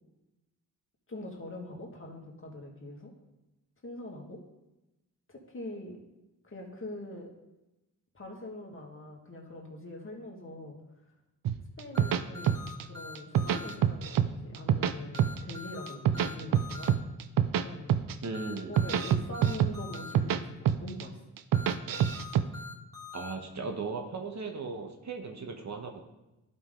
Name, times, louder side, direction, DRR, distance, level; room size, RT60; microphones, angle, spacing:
voice 1, 1.1-3.1 3.8-4.4 5.3-6.0 6.4-7.3 8.1-10.8 11.8-12.6 12.8-17.0 17.6-17.9 18.7-21.2, left 1 dB, 35° left, 0 dB, 2.1 m, -43 dB
sound 1, 11.5-12.8 13.2-14.3 14.5-15.5 15.9-17.6 17.9-18.2 18.6-20.4 20.7-21.0 21.4-22.4, right 9 dB, 70° right, 0.6 m, -26 dB
sound 2, 11.9-13.7 15.1-16.9 18.3-20.1 21.5-23.3, left 4 dB, 10° left, 2.8 m, -44 dB
voice 2, 18.2-18.8 23.1-26.0, right 4 dB, 50° right, 4 dB, 1.2 m, -37 dB
11.5 x 5.4 x 3.8 m, 0.98 s
cardioid pair, 50°, 35 cm